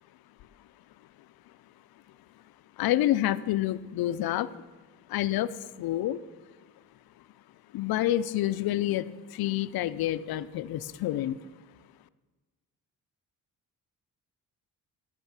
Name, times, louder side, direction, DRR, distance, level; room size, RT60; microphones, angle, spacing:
voice 1, 2.8-4.5 5.1-6.2 7.7-11.4, left 13 dB, 85° left, 14 dB, 0.6 m, -28 dB
14.5 x 6.3 x 7.4 m, 1.3 s
cardioid pair, 145°, 35 cm